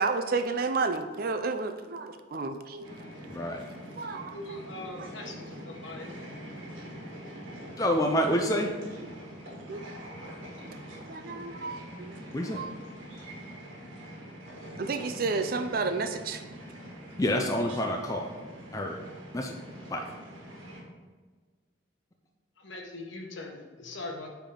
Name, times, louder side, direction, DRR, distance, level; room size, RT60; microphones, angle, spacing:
voice 1, 0.0-2.9 4.0-4.4 9.7-9.8 11.1-12.1 12.5-12.7 14.8-16.4, right 4 dB, 45° right, 8 dB, 0.4 m, -31 dB
sound 1, 2.8-20.8, equal, 75° right, 1.5 m, -44 dB
voice 2, 3.3-3.6 7.8-8.7 12.3-12.6 17.2-18.3 18.7-19.0 19.3-19.5 19.9-20.1, equal, 15° left, 2 dB, 0.4 m, -27 dB
voice 3, 4.3-6.1 22.6-24.3, left 2 dB, 70° left, 2 dB, 1.0 m, -41 dB
8.7 x 3.5 x 3.8 m, 1.4 s
head